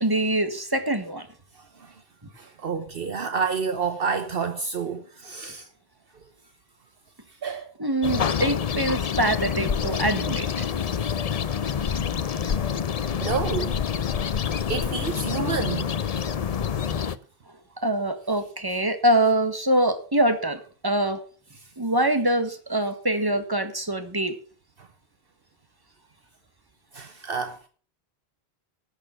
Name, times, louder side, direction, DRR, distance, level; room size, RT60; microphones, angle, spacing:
voice 1, 0.0-1.3 7.8-10.5 17.8-21.2 21.8-24.4, right 1 dB, 20° right, 1.6 m, -24 dB
voice 2, 1.5-2.0 2.3-5.7 7.3-7.7 11.0-11.2 13.2-13.8 14.7-15.9 21.6-21.7 24.8-24.9 26.9-27.7, right 5 dB, 65° right, 1.1 m, -29 dB
sound 1, 8.0-17.2, left 7 dB, 45° left, 0.6 m, -27 dB
11.5 x 6.6 x 7.6 m
omnidirectional pair, 1.0 m